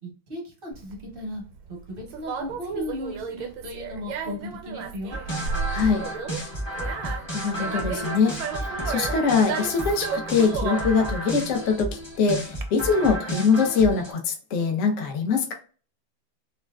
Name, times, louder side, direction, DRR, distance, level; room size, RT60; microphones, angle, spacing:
voice 1, 0.0-1.4 1.7-5.2, left 1 dB, 50° right, -1 dB, 0.6 m, -36 dB
Conversation, 0.7-12.6, right 6 dB, 75° right, 1.2 m, -34 dB
sound 1, 5.1-14.1, right 1 dB, 30° left, 0.4 m, -32 dB
voice 2, 5.7-6.0 7.3-8.4 8.8-15.5, left 5 dB, 75° left, 2 dB, 0.6 m, -23 dB
3.8 x 2.1 x 2.3 m, 0.38 s
omnidirectional pair, 2.1 m